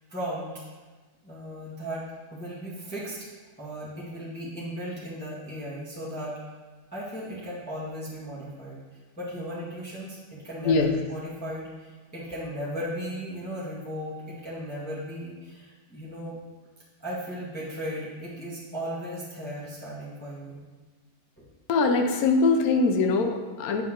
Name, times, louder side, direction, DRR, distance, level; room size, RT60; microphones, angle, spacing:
voice 1, 0.1-0.5 1.2-2.0 2.3-3.2 3.6-6.4 6.9-8.8 9.2-16.4 17.0-20.6, equal, 5° left, -9 dB, 1.6 m, -36 dB
voice 2, 21.7-23.8, left 3 dB, 65° left, 5 dB, 1.2 m, -22 dB
9.1 x 6.1 x 3.8 m, 1.4 s
omnidirectional pair, 1.8 m